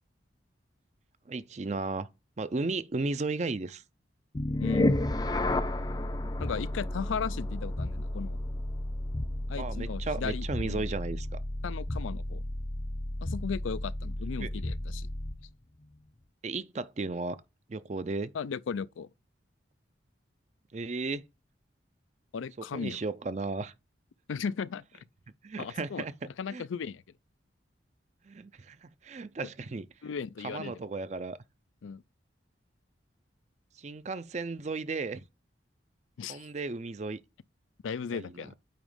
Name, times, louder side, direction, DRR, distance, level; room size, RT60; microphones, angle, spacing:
voice 1, 1.3-2.1 2.4-3.8 9.6-11.4 14.4-14.5 16.4-17.4 17.7-18.3 20.7-21.2 22.6-23.7 25.4-26.1 26.5-26.7 28.3-29.9 30.4-31.4 33.8-35.2 36.3-37.2 38.1-38.5, right 3 dB, 35° right, 0.4 m, -34 dB
sound 1, 4.3-15.5, left 1 dB, 20° left, 0.4 m, -32 dB
voice 2, 4.6-5.0 6.4-8.4 9.5-10.9 11.6-12.4 13.2-15.1 18.3-19.1 22.3-23.0 24.3-25.0 25.6-26.0 26.4-27.0 30.0-30.8 31.8-32.0 36.2-36.5 37.8-38.5, left 6 dB, 90° left, 0.4 m, -36 dB
8.9 x 3.1 x 5.0 m
head